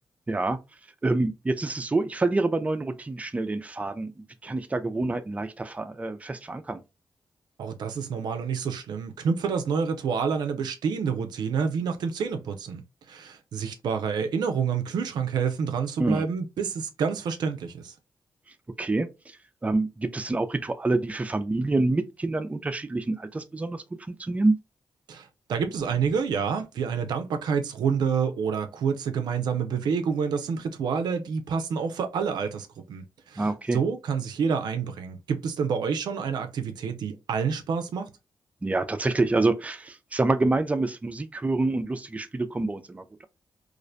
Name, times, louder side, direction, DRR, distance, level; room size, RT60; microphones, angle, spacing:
voice 1, 0.3-0.6 1.0-4.1 4.4-6.8 16.0-16.3 18.8-19.1 19.6-24.5 33.4-33.8 38.6-43.3, right 2 dB, 20° right, 0.4 m, -27 dB
voice 2, 7.6-12.8 13.1-17.9 25.1-38.1, right 6 dB, 80° right, 0.4 m, -28 dB
2.4 x 2.0 x 2.5 m
cardioid pair, 60°, 7 cm